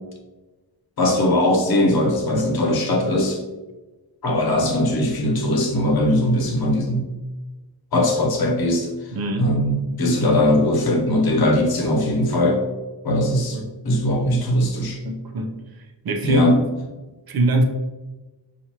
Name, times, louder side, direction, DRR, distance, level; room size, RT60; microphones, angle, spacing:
voice 1, 1.0-3.4 4.2-7.1 7.9-8.9 9.4-12.6 13.0-13.6 13.8-15.0 16.2-16.6, left 1 dB, 60° left, 2 dB, 0.8 m, -20 dB
voice 2, 9.1-9.5 13.5-13.7 15.0-15.5 16.0-16.6 17.3-17.6, right 1 dB, 60° right, 2 dB, 0.6 m, -22 dB
5.7 x 2.5 x 2.9 m, 1.1 s
wide cardioid pair, 175°, 42 cm